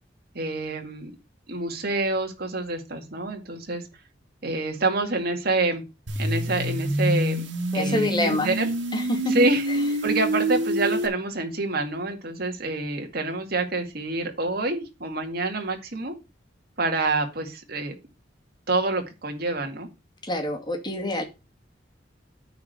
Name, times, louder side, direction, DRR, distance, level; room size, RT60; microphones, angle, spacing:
voice 1, 0.3-1.1 1.5-3.8 4.4-5.8 6.2-7.5 7.7-8.7 9.3-9.7 10.0-16.1 16.8-18.0 18.7-19.9, right 2 dB, 55° right, 4 dB, 2.2 m, -27 dB
sound 1, 6.1-11.1, right 1 dB, 90° right, 1.9 m, -26 dB
voice 2, 7.7-8.5 8.9-9.3 20.2-21.2, left 1 dB, 25° left, 3 dB, 2.3 m, -26 dB
9.3 x 4.9 x 6.7 m, 0.27 s
head